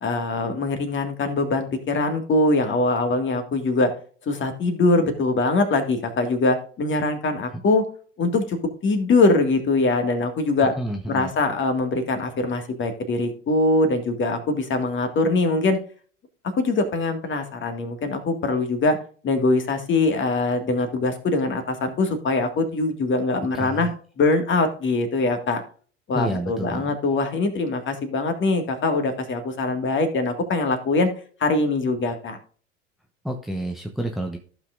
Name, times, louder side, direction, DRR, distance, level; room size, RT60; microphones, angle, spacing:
voice 1, 0.0-3.9 4.2-7.8 8.2-8.6 8.8-10.7 11.1-15.8 16.6-19.0 19.2-23.9 24.2-25.6 26.1-31.1 31.4-32.4, left 3 dB, 30° left, 7 dB, 1.9 m, -22 dB
voice 2, 10.8-11.3 23.5-23.9 26.1-26.9 33.2-34.4, right 1 dB, ahead, 3 dB, 0.9 m, -29 dB
15.0 x 5.9 x 2.5 m, 0.43 s
hypercardioid pair, 80°, 38 cm